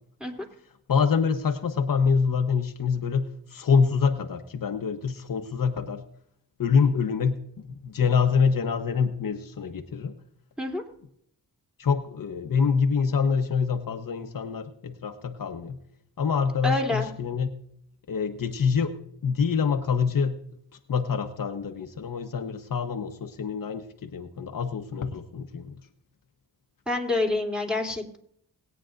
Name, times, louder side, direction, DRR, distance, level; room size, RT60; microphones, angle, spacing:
voice 1, 0.9-6.0 6.6-10.1 11.8-15.8 16.2-17.6 18.1-19.0 19.2-20.4 20.9-25.8, left 6 dB, 60° left, 5 dB, 1.1 m, -26 dB
voice 2, 16.6-17.1 26.9-28.2, left 2 dB, ahead, 1 dB, 3.0 m, -27 dB
20.5 x 9.4 x 2.6 m, 0.67 s
cardioid pair, 65°, 37 cm